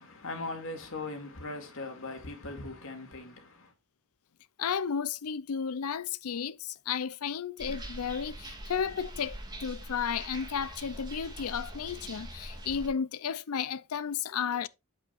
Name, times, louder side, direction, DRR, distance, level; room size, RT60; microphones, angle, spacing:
voice 1, 0.0-3.7, left 2 dB, 65° left, 2.4 m, -40 dB
voice 2, 4.6-14.7, left 7 dB, 80° left, 0.5 m, -33 dB
sound 1, 7.6-12.9, right 1 dB, 20° right, 2.2 m, -43 dB
8.8 x 8.0 x 2.5 m
head